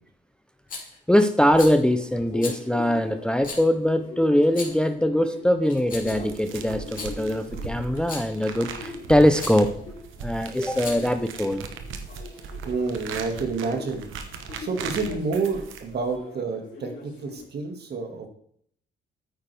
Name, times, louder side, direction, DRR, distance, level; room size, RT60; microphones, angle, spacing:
Rattle, 0.7-1.0 1.5-1.8 2.4-2.6 3.4-3.7 4.4-4.9 5.6-6.3 6.8-7.1 7.9-8.4 9.4-9.6 10.7-11.2, left 4 dB, 45° left, 2.9 m, -37 dB
voice 1, 1.1-9.7 10.2-11.7, left 1 dB, 5° left, 9 dB, 0.6 m, -22 dB
sound 1, 1.9-17.4, left 5 dB, 65° left, 3.9 m, -43 dB
sound 2, 6.0-16.2, right 5 dB, 80° right, 1.2 m, -38 dB
voice 2, 12.7-18.3, right 4 dB, 55° right, 4 dB, 2.1 m, -29 dB
9.1 x 8.9 x 3.5 m, 0.65 s
cardioid pair, 90°, 20 cm